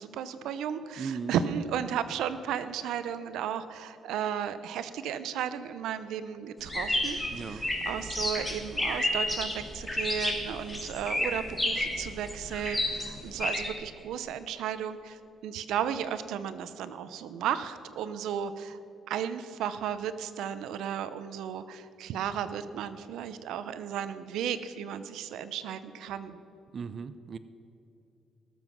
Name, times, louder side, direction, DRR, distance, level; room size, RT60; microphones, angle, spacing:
voice 1, 0.0-18.8 19.1-26.4, right 9 dB, 85° right, 13 dB, 0.7 m, -34 dB
voice 2, 1.0-1.3 7.3-7.7 26.7-27.4, right 5 dB, 45° right, 13 dB, 0.5 m, -37 dB
sound 1, 6.7-13.7, left 1 dB, 10° left, 2.9 m, -30 dB
19.5 x 7.3 x 5.9 m, 2.8 s
cardioid pair, 90°, 0 cm